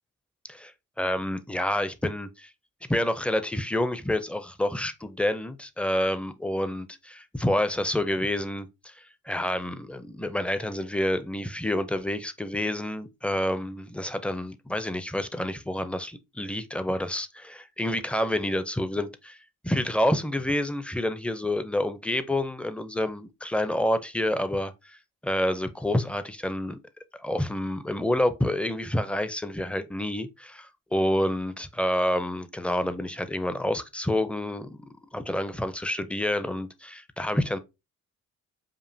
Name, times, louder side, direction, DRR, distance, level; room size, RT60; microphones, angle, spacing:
voice 1, 1.0-2.5 2.9-19.4 19.6-26.8 27.1-34.9 35.1-37.6, left 1 dB, 5° left, 0.4 m, -28 dB
5.1 x 2.5 x 2.6 m
cardioid pair, 90°, 30 cm